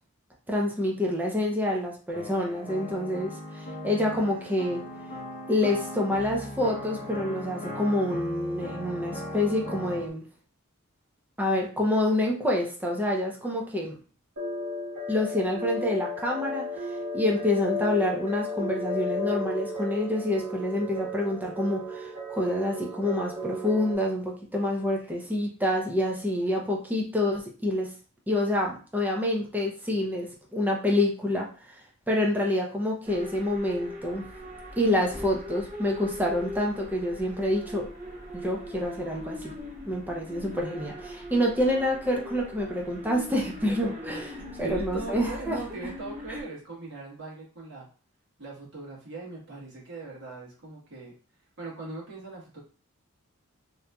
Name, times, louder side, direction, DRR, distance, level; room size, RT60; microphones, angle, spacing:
voice 1, 0.5-4.8 5.5-10.2 11.4-14.0 15.1-16.7 17.1-27.9 28.3-31.5 32.1-34.2 34.8-37.9 38.4-39.5 39.9-45.6 46.3-46.4, left 1 dB, 10° right, 0 dB, 0.5 m, -27 dB
sound 1, 2.1-10.1, left 1 dB, 35° left, 0.6 m, -38 dB
sound 2, 14.4-24.0, left 2 dB, 85° right, 1.4 m, -34 dB
sound 3, 33.0-46.4, left 1 dB, 35° right, 0.8 m, -40 dB
voice 2, 44.6-47.9 48.4-51.1 51.6-52.6, right 3 dB, 55° right, -5 dB, 1.2 m, -39 dB
2.8 x 2.5 x 2.2 m, 0.38 s
head